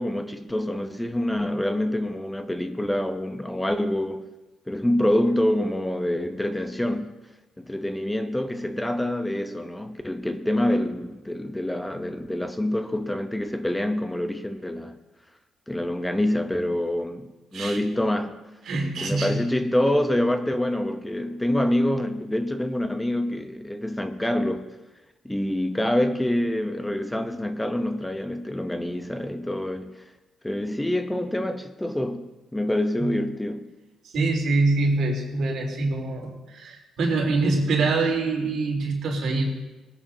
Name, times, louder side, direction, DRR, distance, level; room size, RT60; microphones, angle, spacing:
voice 1, 0.0-4.3 4.7-7.1 7.6-15.0 15.7-18.4 19.0-24.8 25.2-30.0 30.4-33.7, left 1 dB, 10° left, 0.7 m, -26 dB
voice 2, 18.7-19.4 33.0-33.1 34.1-39.4, right 3 dB, 70° right, 3.4 m, -24 dB
20.5 x 10.0 x 2.8 m
cardioid pair, 90°, 0 cm